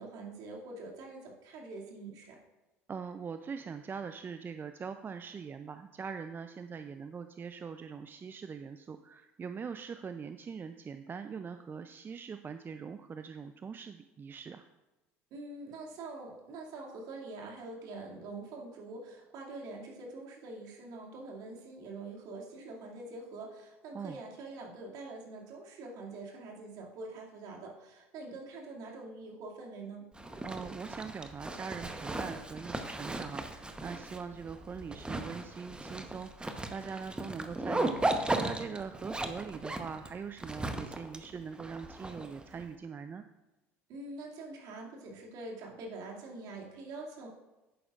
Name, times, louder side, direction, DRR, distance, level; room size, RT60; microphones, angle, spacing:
voice 1, 0.0-2.4 15.3-30.0 43.9-47.3, right 3 dB, 60° right, -2 dB, 2.4 m, -45 dB
voice 2, 2.9-14.6 23.9-24.2 30.4-43.2, right 6 dB, 30° right, 9 dB, 0.5 m, -42 dB
Zipper (clothing), 30.1-42.6, right 2 dB, 15° right, 1.0 m, -37 dB
11.0 x 9.2 x 2.5 m, 1.1 s
hypercardioid pair, 65°, 7 cm